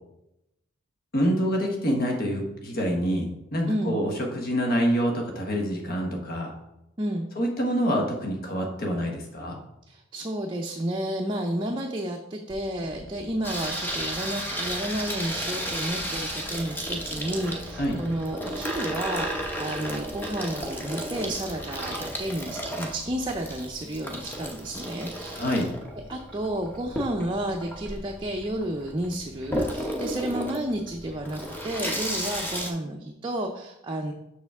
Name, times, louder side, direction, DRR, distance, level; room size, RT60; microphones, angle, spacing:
voice 1, 1.1-6.5 7.4-9.6 17.8-18.0 25.3-25.7, equal, 50° left, 1 dB, 1.2 m, -26 dB
voice 2, 3.7-4.0 7.0-7.3 9.9-25.7 26.1-34.1, right 1 dB, 25° right, 1 dB, 0.6 m, -31 dB
sound 1, 12.5-24.8 25.2-25.3, equal, 75° left, 1.5 m, -47 dB
Water tap faucet / Sink (filling or washing), 13.4-32.7, equal, 10° left, 0.9 m, -33 dB
6.6 x 6.2 x 3.6 m, 0.86 s
head